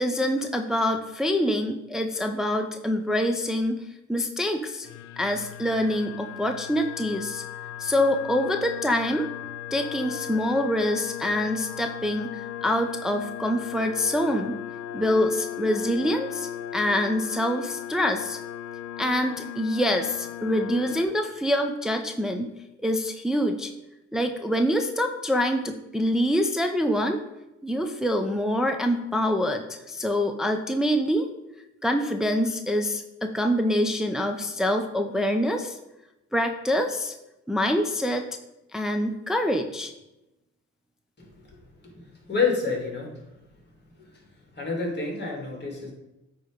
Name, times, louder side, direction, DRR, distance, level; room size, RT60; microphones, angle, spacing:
voice 1, 0.0-3.8 4.1-4.9 5.2-7.4 7.8-9.3 9.7-14.6 14.9-18.4 19.0-22.5 22.8-23.7 24.1-27.2 27.6-31.3 31.8-35.8 36.3-37.1 37.5-38.3 38.7-39.9, equal, ahead, 4 dB, 0.6 m, -25 dB
sound 1, 4.8-21.0, left 11 dB, 75° left, 0.6 m, -37 dB
voice 2, 41.9-43.1 44.0-44.1 44.5-45.9, left 4 dB, 35° left, 0 dB, 2.2 m, -28 dB
8.9 x 3.1 x 5.0 m, 0.95 s
cardioid pair, 90°, 30 cm